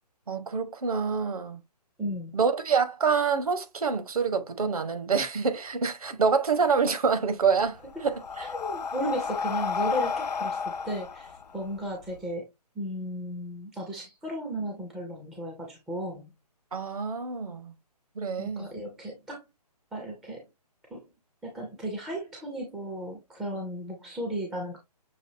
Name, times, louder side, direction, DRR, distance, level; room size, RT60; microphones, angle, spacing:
voice 1, 0.3-1.6 2.3-8.5 16.7-17.7 18.1-18.7, right 5 dB, 60° right, 1.1 m, -26 dB
voice 2, 2.0-2.3 8.4-12.5 12.8-16.3 18.4-19.4 19.9-20.5 20.9-21.0 21.4-24.8, equal, ahead, 0.4 m, -35 dB
Breathing, 7.5-12.2, left 5 dB, 80° left, 0.4 m, -32 dB
6.3 x 2.6 x 2.6 m
figure-of-eight pair, 140°, 21 cm